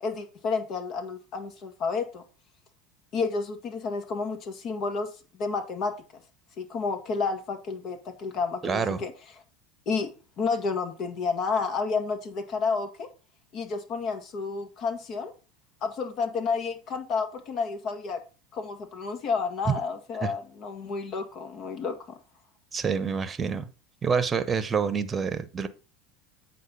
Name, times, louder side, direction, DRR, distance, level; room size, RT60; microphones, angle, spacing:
voice 1, 0.0-2.2 3.1-5.1 5.4-6.0 6.6-9.1 9.9-13.1 13.5-15.3 15.8-18.2 18.5-22.2, left 4 dB, 50° left, 1.8 m, -30 dB
voice 2, 8.6-9.0 19.7-19.8 20.2-20.3 22.7-23.7 24.0-25.7, right 6 dB, 25° right, 1.0 m, -27 dB
8.4 x 4.1 x 5.7 m
hypercardioid pair, 90°, 0 cm